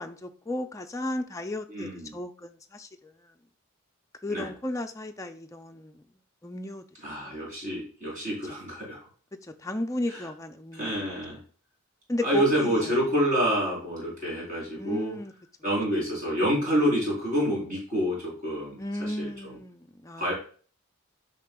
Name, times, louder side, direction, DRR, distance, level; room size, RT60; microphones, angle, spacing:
voice 1, 0.0-3.3 4.2-6.0 6.4-6.8 7.2-7.4 9.4-10.9 12.1-13.0 14.7-15.3 18.8-20.3, left 1 dB, 15° left, 0.4 m, -34 dB
voice 2, 1.7-2.1 4.3-4.5 7.0-9.1 10.1-10.2 10.7-11.4 12.2-15.2 15.6-19.5 20.2-20.3, equal, 40° right, 3.8 m, -28 dB
9.6 x 5.5 x 2.3 m
head